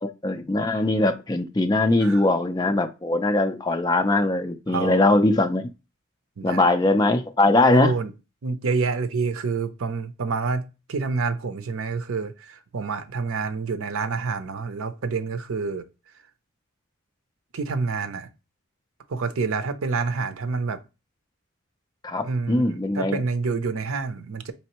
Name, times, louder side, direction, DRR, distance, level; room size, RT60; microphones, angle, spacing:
voice 1, 0.0-5.7 6.4-7.9 22.0-23.2, left 2 dB, 20° left, 0.4 m, -21 dB
voice 2, 4.7-5.1 6.4-6.6 7.7-8.1 8.4-15.8 17.5-18.3 19.1-20.8 22.2-24.5, right 4 dB, 70° right, 0.6 m, -27 dB
4.3 x 3.2 x 2.9 m
head